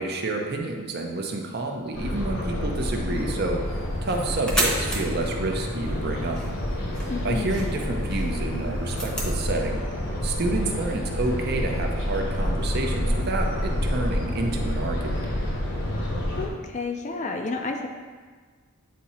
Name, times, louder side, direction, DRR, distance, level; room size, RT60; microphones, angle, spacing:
voice 1, 0.0-3.6 4.0-6.4 7.2-9.8 10.2-15.3, right 2 dB, 50° right, 2 dB, 0.6 m, -29 dB
sound 1, 1.9-16.5, equal, 60° left, 1.0 m, -28 dB
sound 2, 3.6-9.4, right 1 dB, 5° left, 0.8 m, -33 dB
voice 2, 7.1-7.6 16.4-17.9, left 3 dB, 35° left, 3 dB, 0.4 m, -30 dB
8.3 x 2.8 x 4.2 m, 1.5 s
head